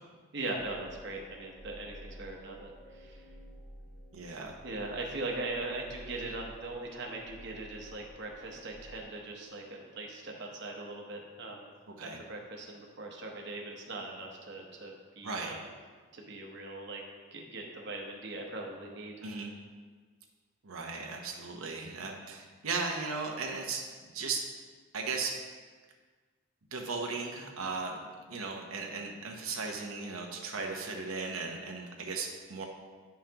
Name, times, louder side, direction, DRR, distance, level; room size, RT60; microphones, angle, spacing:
voice 1, 0.3-3.2 4.6-11.7 12.0-15.6 16.1-17.0 17.3-19.1, right 2 dB, 55° right, 0 dB, 0.9 m, -40 dB
sound 1, 0.5-9.0, equal, 10° left, 1.1 m, -52 dB
voice 2, 4.1-4.5 12.0-12.2 15.2-15.6 19.2-19.5 20.6-23.8 24.1-24.4 24.9-25.3 26.7-28.0 28.3-32.7, right 4 dB, 90° right, 1 dB, 0.9 m, -36 dB
10.0 x 5.6 x 2.9 m, 1.5 s
head